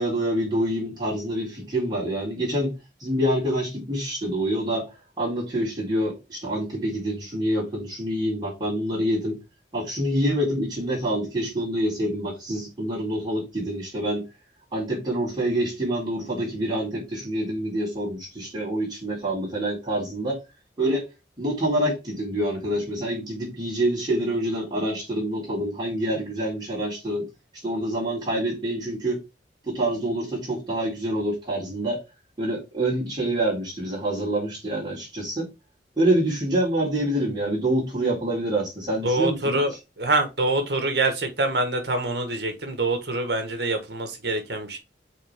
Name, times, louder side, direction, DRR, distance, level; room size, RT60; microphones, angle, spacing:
voice 1, 0.0-2.7 3.0-4.9 5.2-9.4 9.7-14.2 14.7-20.4 20.8-21.1 21.4-27.3 27.6-29.2 29.6-32.0 32.4-35.5 36.0-39.6, right 1 dB, 25° right, 4.0 m, -26 dB
voice 2, 39.0-39.7 40.0-44.8, right 2 dB, 65° right, 1.5 m, -25 dB
6.4 x 4.1 x 3.6 m
head